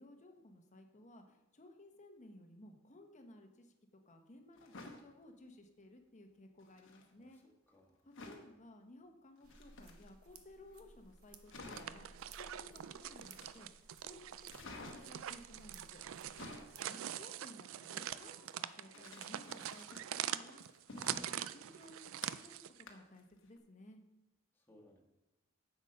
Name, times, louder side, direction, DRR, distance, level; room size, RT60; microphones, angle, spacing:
voice 1, 0.0-3.7 4.0-7.4 8.0-13.7 14.0-16.0 16.8-20.6 20.9-24.0, left 1 dB, 35° left, 4 dB, 1.1 m, -58 dB
sound 1, 4.5-5.0 6.6-7.1 8.1-8.5 9.4-10.4 10.8-10.9 11.1-11.2 11.5-12.1 13.2-13.8 14.5-15.3 16.1-16.8 18.9-20.2 20.6-22.6 22.9-23.2 23.6-23.7, left 2 dB, 65° left, 1.1 m, -52 dB
voice 2, 7.2-8.0 16.4-16.6 24.6-25.0, left 1 dB, 10° left, -1 dB, 1.6 m, -63 dB
sound 2, 9.4-16.8, right 4 dB, 85° right, 0.9 m, -60 dB
sound 3, 11.5-22.8, right 11 dB, 65° right, 0.4 m, -44 dB
7.8 x 7.2 x 5.3 m, 1.0 s
head